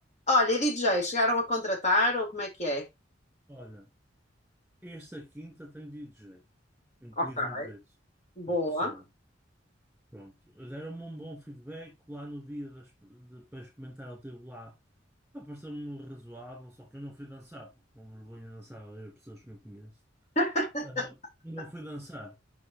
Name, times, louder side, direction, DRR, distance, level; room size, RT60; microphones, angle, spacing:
voice 1, 0.3-2.9 7.2-7.7 8.4-8.9 20.4-21.1, left 1 dB, 40° left, 4.3 m, -27 dB
voice 2, 3.5-3.9 4.8-6.4 7.0-7.8 8.5-9.1 10.1-14.7 15.3-19.9 20.8-21.2 21.4-22.4, equal, 5° right, 3.5 m, -44 dB
9.4 x 6.0 x 3.0 m
head